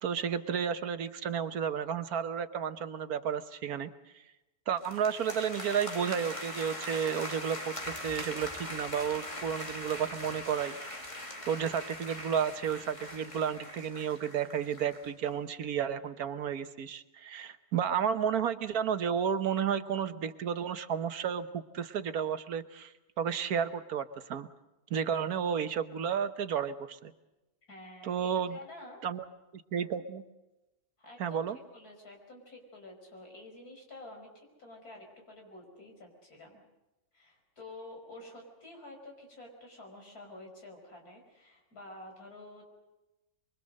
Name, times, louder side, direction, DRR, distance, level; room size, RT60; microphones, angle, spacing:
voice 1, 0.0-3.9 4.7-10.8 11.5-22.9 23.2-24.5 24.9-27.1 28.0-28.6 29.0-29.2 29.5-30.2 31.2-31.6, right 8 dB, 80° right, 10 dB, 1.5 m, -32 dB
sound 1, 4.8-15.1, left 1 dB, 20° left, 2.2 m, -41 dB
voice 2, 27.7-29.0 31.0-36.6 37.1-42.6, left 2 dB, 85° left, 1 dB, 5.8 m, -49 dB
24.0 x 24.0 x 6.5 m, 0.99 s
omnidirectional pair, 1.6 m